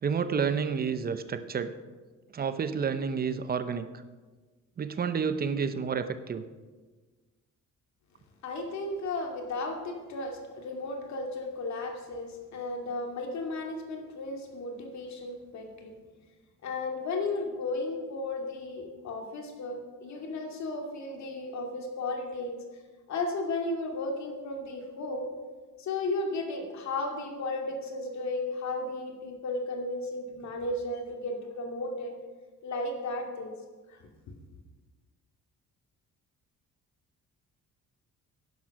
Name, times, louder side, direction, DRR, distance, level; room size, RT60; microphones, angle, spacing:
voice 1, 0.0-1.7 2.3-3.9 4.8-6.4, right 6 dB, 30° right, 11 dB, 0.7 m, -30 dB
voice 2, 8.4-15.9 16.6-22.6 23.1-25.3 25.8-32.1 32.6-33.5 33.9-34.0, left 2 dB, 60° left, 2 dB, 2.4 m, -34 dB
11.0 x 10.5 x 5.9 m, 1.3 s
cardioid pair, 170°, 31 cm